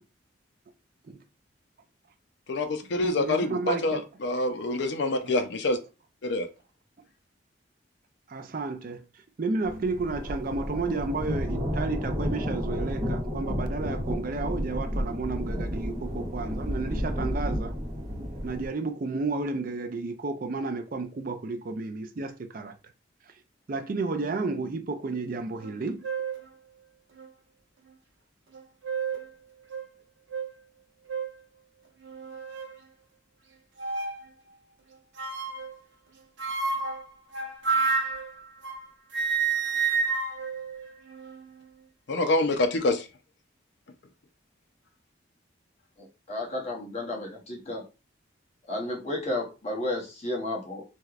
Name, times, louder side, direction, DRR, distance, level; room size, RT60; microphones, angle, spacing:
voice 1, 2.5-5.8 6.2-6.5 42.1-43.1, left 2 dB, 65° left, 0.5 m, -26 dB
voice 2, 3.1-4.0 5.2-5.3 8.3-9.0 9.4-17.8 18.4-22.7 23.7-26.0, right 3 dB, 45° right, 0.4 m, -32 dB
sound 1, 9.6-18.7, equal, 15° right, 1.4 m, -31 dB
sound 2, 25.6-25.7 26.0-26.4 27.2-27.3 28.5-29.3 29.7-29.9 30.3-30.5 31.1-31.4 32.0-32.8 33.8-34.2 35.2-35.8 36.4-38.9 39.1-41.5, right 5 dB, 80° right, 0.9 m, -30 dB
voice 3, 46.0-47.8 48.7-50.8, left 1 dB, 35° left, 0.8 m, -32 dB
3.2 x 2.8 x 2.4 m
head